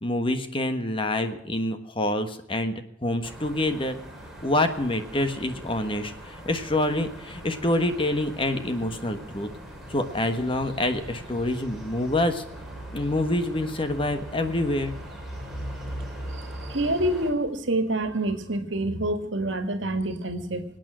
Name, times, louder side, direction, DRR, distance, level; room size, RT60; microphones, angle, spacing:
voice 1, 0.0-4.0 4.4-9.5 9.9-12.4 12.9-14.9, left 1 dB, 25° left, 8 dB, 1.3 m, -26 dB
sound 1, 3.2-17.3, right 1 dB, ahead, 3.8 m, -40 dB
voice 2, 16.7-20.7, right 1 dB, 75° right, 9 dB, 1.8 m, -27 dB
24.5 x 9.1 x 6.2 m, 0.73 s
head